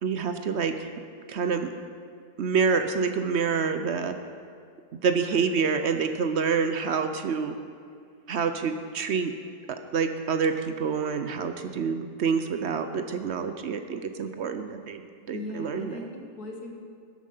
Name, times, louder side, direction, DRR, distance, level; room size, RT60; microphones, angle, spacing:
voice 1, 0.0-0.9 1.3-1.7 2.4-4.1 4.9-7.6 8.3-9.3 9.7-16.0, right 5 dB, 60° right, 8 dB, 0.7 m, -27 dB
voice 2, 5.2-5.7 15.3-16.7, left 2 dB, 75° left, 2 dB, 1.8 m, -39 dB
13.0 x 8.8 x 5.4 m, 2.3 s
omnidirectional pair, 1.6 m